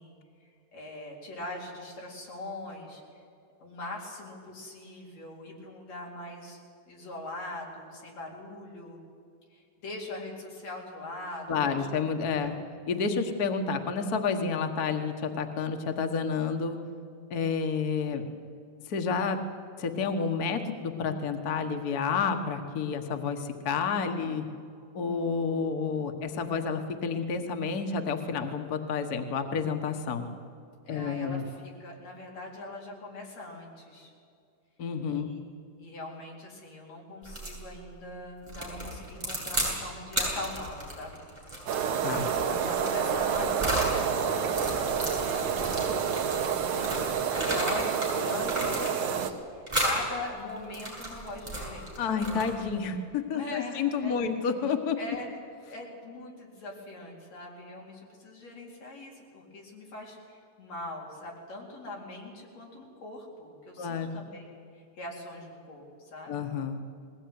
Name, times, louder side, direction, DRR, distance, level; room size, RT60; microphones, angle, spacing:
voice 1, 0.0-3.2 3.6-6.6 6.9-9.0 9.5-11.9 12.3-12.5 30.8-34.1 35.1-35.4 35.8-41.2 42.2-52.1 53.3-54.2 55.0-55.3 55.6-64.5 64.7-66.4, left 2 dB, 50° left, -2 dB, 5.0 m, -41 dB
voice 2, 11.5-12.5 12.9-16.8 17.3-18.2 18.9-19.4 19.8-24.4 24.9-30.3 30.9-31.4 34.8-35.3 42.0-42.3 52.0-55.0 63.8-64.1 66.3-66.8, left 5 dB, 80° left, 6 dB, 0.8 m, -30 dB
sound 1, 37.3-37.6 38.5-39.8 40.1-44.0 44.4-48.1 48.4-49.2 49.7-50.0 50.6-52.7, right 1 dB, 5° right, 7.7 m, -33 dB
sound 2, 41.7-49.3, right 7 dB, 65° right, 2.5 m, -29 dB
20.5 x 18.0 x 9.5 m, 2.4 s
omnidirectional pair, 4.0 m